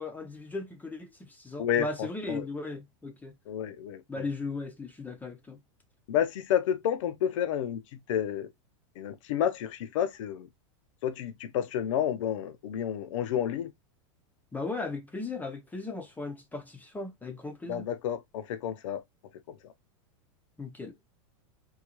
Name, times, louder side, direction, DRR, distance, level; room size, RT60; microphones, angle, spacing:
voice 1, 0.0-3.3 4.1-5.6 14.5-17.9 20.6-20.9, left 3 dB, 10° left, 0.5 m, -37 dB
voice 2, 3.5-4.0 6.1-7.8 8.1-8.5 9.0-10.5 11.0-13.7 17.7-19.0, left 9 dB, 75° left, 0.6 m, -30 dB
3.7 x 2.3 x 2.9 m
supercardioid pair, 125°, 17 cm